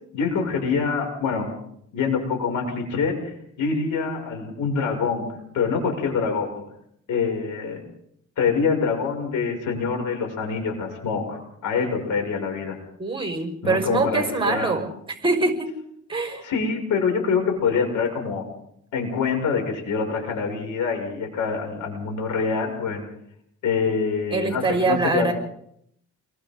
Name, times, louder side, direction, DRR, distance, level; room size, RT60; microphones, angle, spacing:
voice 1, 0.1-1.5 1.9-3.3 3.6-5.3 5.5-6.6 7.1-7.8 8.4-12.8 13.6-14.8 16.4-18.4 18.9-23.0 23.6-25.3, left 5 dB, 80° left, 2 dB, 6.6 m, -25 dB
voice 2, 13.0-15.7 16.1-16.5 24.3-25.3, right 3 dB, 15° right, 4 dB, 5.4 m, -24 dB
29.5 x 23.0 x 3.9 m, 0.71 s
cardioid pair, 90°, 30 cm